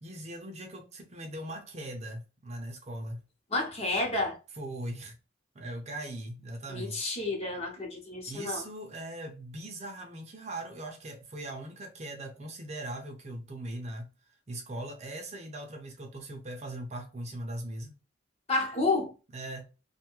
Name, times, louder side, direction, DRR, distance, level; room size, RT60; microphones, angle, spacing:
voice 1, 0.0-3.2 4.6-5.2 5.5-7.1 8.3-14.1 14.5-17.9 19.3-19.7, right 1 dB, 35° right, 0.5 m, -40 dB
voice 2, 3.5-4.4 6.7-8.6 18.5-19.1, left 2 dB, 30° left, 0.8 m, -30 dB
2.6 x 2.3 x 2.9 m
head